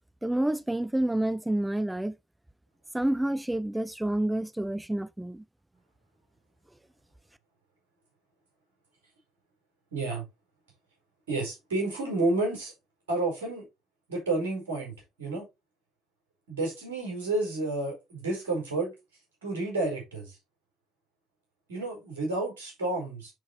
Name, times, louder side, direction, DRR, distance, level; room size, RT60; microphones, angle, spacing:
voice 1, 0.2-2.1 2.9-5.4, right 1 dB, 10° right, 0.5 m, -28 dB
voice 2, 9.9-10.2 11.3-12.7 13.1-13.7 14.1-15.4 16.5-18.9 19.4-20.3 21.7-23.3, right 2 dB, 80° right, 4.8 m, -30 dB
10.0 x 4.7 x 3.2 m
figure-of-eight pair, 50°, 0 cm